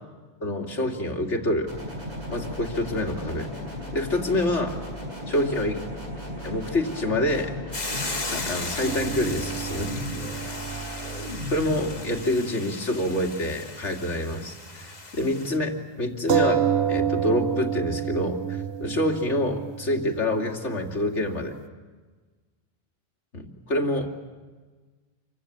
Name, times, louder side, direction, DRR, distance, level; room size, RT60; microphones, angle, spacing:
voice 1, 0.4-1.7 2.3-3.5 3.9-4.8 5.3-5.8 6.4-7.5 8.3-10.0 11.5-14.9 15.1-21.6 23.3-24.1, left 1 dB, 85° left, 3 dB, 2.9 m, -27 dB
sound 1, 1.7-12.0, left 1 dB, 35° right, 7.9 m, -36 dB
Hiss / Boiling, 7.7-15.6, left 2 dB, 35° left, 2.0 m, -36 dB
sound 2, 8.8-12.7 13.0-13.1 16.3-21.5, right 8 dB, 65° right, 1.3 m, -30 dB
28.0 x 24.5 x 8.7 m, 1.4 s
omnidirectional pair, 1.2 m